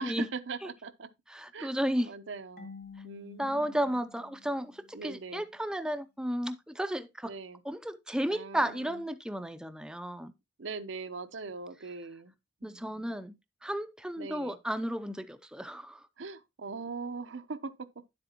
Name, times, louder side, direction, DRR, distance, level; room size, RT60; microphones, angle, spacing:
voice 1, 0.0-1.1 1.5-1.7 2.0-2.7 3.0-3.8 4.9-5.4 7.2-7.6 8.3-9.0 10.6-12.3 12.6-13.1 14.2-14.6 16.2-17.7, right 4 dB, 80° right, 0.8 m, -41 dB
voice 2, 1.3-2.1 3.4-7.3 7.6-10.3 12.6-13.4 13.6-16.1, equal, 5° right, 0.4 m, -33 dB
Marimba xylophone / Wood, 2.6-5.3, left 4 dB, 55° left, 1.7 m, -50 dB
10.0 x 7.7 x 2.9 m
head